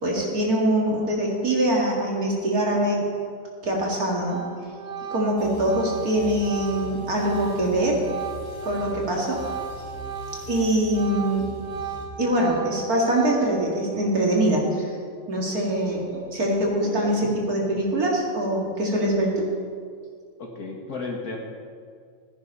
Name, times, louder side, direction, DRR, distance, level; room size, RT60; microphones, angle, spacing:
voice 1, 0.0-3.0 3.6-4.4 5.1-8.0 8.6-9.4 10.5-11.5 12.2-14.9 15.3-19.4, right 1 dB, 55° right, -2 dB, 2.7 m, -23 dB
Organ, 3.7-3.9 4.2-10.6 10.8-13.7, right 6 dB, 75° right, 2.4 m, -36 dB
sound 1, 5.4-12.1, right 1 dB, 75° left, 2.6 m, -41 dB
voice 2, 16.6-17.3 20.4-21.4, left 3 dB, 60° left, 0 dB, 2.0 m, -35 dB
14.0 x 9.5 x 5.5 m, 2.1 s
omnidirectional pair, 1.9 m